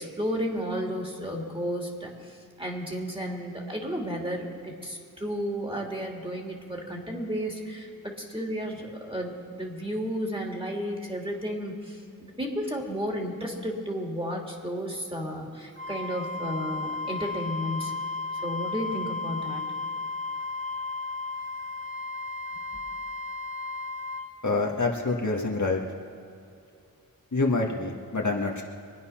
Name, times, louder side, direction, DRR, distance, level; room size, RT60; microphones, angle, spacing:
voice 1, 0.0-17.9 18.4-19.6 22.5-22.6, equal, 15° right, 0 dB, 2.9 m, -33 dB
Wind instrument woodwind instrument, 15.8-24.3, left 3 dB, 35° right, 2.0 m, -34 dB
voice 2, 24.4-25.8 27.3-28.6, left 3 dB, 50° left, -1 dB, 1.6 m, -26 dB
24.0 x 9.4 x 5.8 m, 2.6 s
wide cardioid pair, 45°, 36 cm